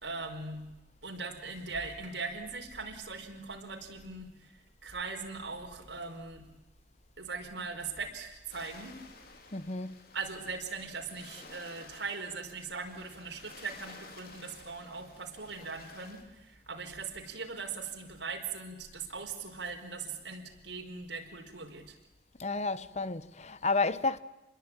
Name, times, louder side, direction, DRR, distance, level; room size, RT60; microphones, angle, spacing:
voice 1, 0.0-0.6 1.0-6.5 7.2-9.0 10.1-22.0, right 4 dB, 80° right, 4.9 m, -40 dB
sound 1, 8.5-16.2, left 3 dB, 55° left, 3.7 m, -53 dB
voice 2, 9.5-10.0 22.4-24.2, left 3 dB, 40° left, 1.0 m, -31 dB
28.0 x 21.5 x 9.0 m
head